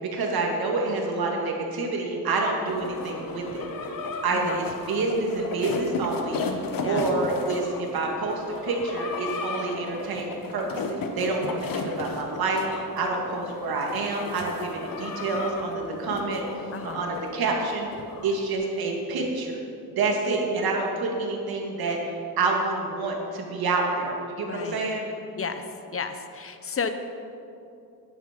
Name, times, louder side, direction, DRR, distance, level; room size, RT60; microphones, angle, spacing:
voice 1, 0.0-3.7 4.2-6.4 6.8-16.4 16.8-17.9 18.2-19.6 19.9-25.1, right 3 dB, 75° right, 1 dB, 2.2 m, -28 dB
sound 1, 2.7-18.4, left 4 dB, 60° left, 1.2 m, -34 dB
voice 2, 4.3-4.6 6.8-7.0 16.7-17.1 24.4-24.8 25.4-25.6 25.9-26.9, left 5 dB, 35° left, 9 dB, 0.8 m, -32 dB
11.0 x 10.5 x 5.2 m, 2.6 s
cardioid pair, 105°, 37 cm